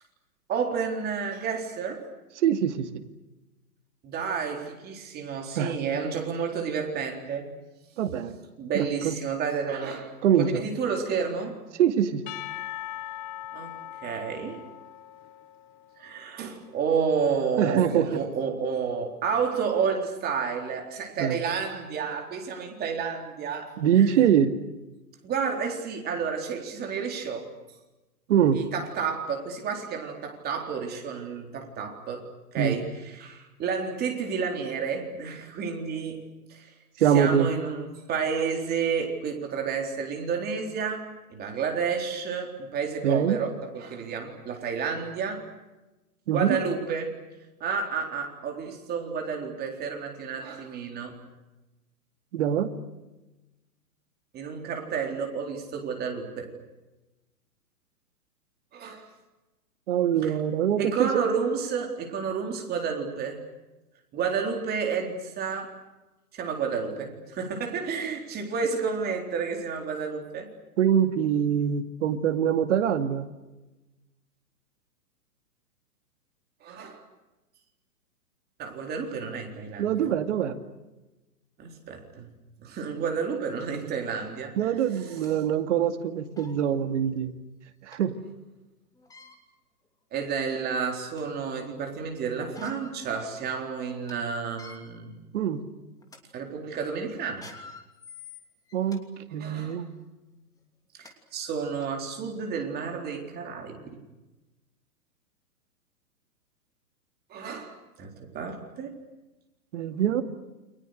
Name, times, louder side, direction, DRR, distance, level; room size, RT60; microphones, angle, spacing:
voice 1, 0.5-2.0 4.0-7.5 8.6-10.1 10.4-11.6 13.5-13.7 14.0-14.6 16.0-23.7 24.0-24.1 25.2-27.5 28.5-32.3 32.5-36.2 36.5-36.7 37.1-45.4 46.3-47.1 47.6-51.1 54.3-56.5 58.7-59.1 60.2-60.3 60.8-63.4 64.1-65.7 66.3-70.5 76.6-77.0 78.6-80.1 81.6-82.3 82.6-84.7 90.1-95.2 96.3-97.5 99.4-99.8 101.0-104.0 107.3-108.9, right 6 dB, 20° right, 3 dB, 4.0 m, -31 dB
voice 2, 2.4-3.0 5.6-5.9 8.0-8.4 8.7-9.1 10.2-10.6 11.8-12.2 17.6-18.2 21.2-21.4 23.8-24.5 28.3-28.6 32.6-32.8 37.0-37.5 43.0-43.4 46.3-46.6 52.3-52.7 59.9-61.2 70.8-73.3 79.8-80.6 84.6-87.4 87.8-88.2 95.3-95.6 98.7-99.0 99.3-99.9 109.7-110.2, right 9 dB, 45° right, 8 dB, 2.4 m, -24 dB
Percussion / Church bell, 12.3-16.4, left 13 dB, 30° left, 1.2 m, -40 dB
sound 1, 84.2-84.3 84.9-85.4 86.0-86.1 86.3-86.6 87.9-88.0 88.9-89.4 90.1-90.2 90.7-91.4 92.4-93.0 93.4-93.5 93.9-94.1 94.5-94.8 95.4-95.6 96.0-96.2 97.2-99.0 99.6-99.8 100.7-100.8 101.0-101.1 101.8-101.9, left 5 dB, 5° left, 2.9 m, -48 dB
29.5 x 26.5 x 6.7 m, 1.1 s
hypercardioid pair, 145°, 49 cm